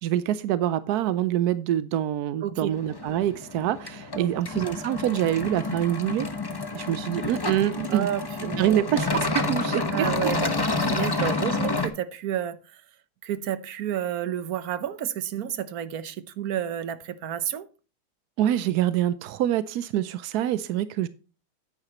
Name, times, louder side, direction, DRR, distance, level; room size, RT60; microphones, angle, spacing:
voice 1, 0.0-6.3 6.7-8.1 8.6-9.8 11.1-11.3 18.4-21.1, right 12 dB, 80° right, 0.8 m, -25 dB
voice 2, 2.4-2.7 4.1-4.4 7.9-8.9 9.9-12.6 13.2-17.7, right 10 dB, 60° right, 1.1 m, -30 dB
sound 1, 2.7-11.9, left 3 dB, 30° left, 0.4 m, -29 dB
9.8 x 9.7 x 2.9 m
omnidirectional pair, 2.2 m